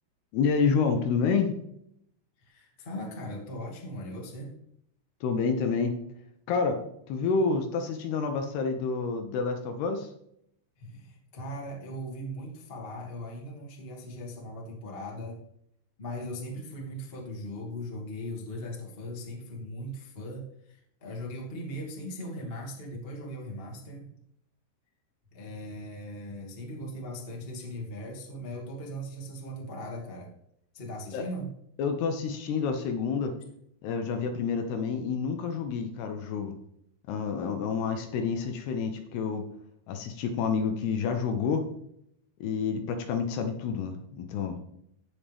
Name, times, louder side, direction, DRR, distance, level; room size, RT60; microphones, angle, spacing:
voice 1, 0.3-1.5 5.2-5.9 6.5-6.8 7.1-10.1 31.1-31.2 31.8-33.4 33.8-36.6 37.1-39.4 39.9-41.7 42.4-44.6, left 5 dB, 75° left, 6 dB, 2.6 m, -28 dB
voice 2, 2.4-4.5 10.8-15.4 16.0-24.1 25.3-30.3 30.7-31.5, equal, 45° left, -2 dB, 0.7 m, -39 dB
17.0 x 5.8 x 3.4 m, 0.74 s
omnidirectional pair, 5.2 m